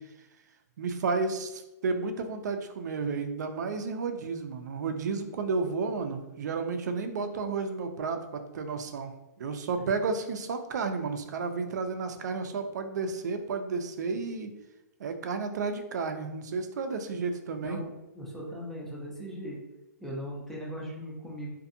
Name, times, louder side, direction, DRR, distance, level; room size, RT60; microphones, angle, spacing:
voice 1, 0.8-9.1 9.4-14.5 15.0-17.8, right 4 dB, 75° right, 7 dB, 0.4 m, -32 dB
voice 2, 17.6-19.6 20.0-21.5, equal, 5° left, -4 dB, 0.4 m, -38 dB
2.5 x 2.5 x 2.6 m, 0.99 s
hypercardioid pair, 160°, 9 cm